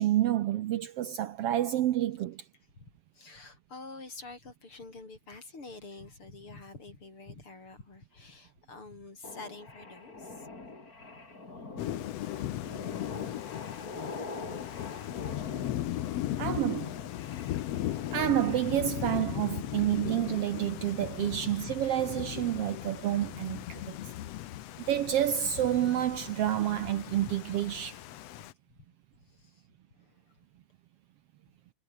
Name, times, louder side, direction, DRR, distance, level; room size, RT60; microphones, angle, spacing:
voice 1, 0.0-2.4 16.4-16.9 18.1-24.0 24.9-28.0, right 12 dB, 70° right, 1.6 m, -29 dB
voice 2, 2.8-10.5 21.3-21.4 28.4-28.5 29.3-29.6 29.9-30.3, left 3 dB, 45° left, 6.4 m, -48 dB
sound 1, 9.2-19.2, left 3 dB, 30° left, 4.3 m, -44 dB
Thunder / Rain, 11.8-28.5, left 14 dB, 70° left, 1.9 m, -37 dB
omnidirectional pair, 3.3 m